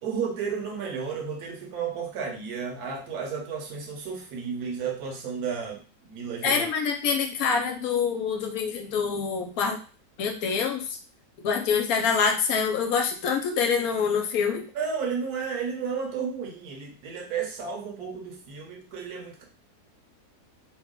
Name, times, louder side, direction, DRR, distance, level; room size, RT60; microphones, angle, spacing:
voice 1, 0.0-6.6 14.7-19.4, right 6 dB, 70° right, 1 dB, 1.3 m, -32 dB
voice 2, 6.4-9.8 10.2-11.0 11.4-14.7, left 6 dB, 70° left, 4 dB, 1.0 m, -26 dB
3.1 x 2.3 x 3.6 m, 0.37 s
omnidirectional pair, 1.7 m